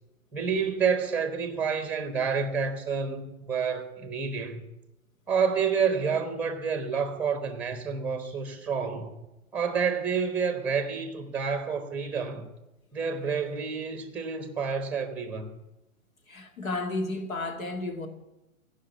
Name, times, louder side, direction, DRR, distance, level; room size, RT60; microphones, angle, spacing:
voice 1, 0.3-4.6 5.3-9.1 9.5-12.5 12.9-15.5, right 6 dB, 5° right, 1.0 m, -29 dB
voice 2, 16.3-18.1, left 2 dB, 75° left, 2.1 m, -32 dB
15.0 x 5.5 x 8.4 m
hypercardioid pair, 130°, 41 cm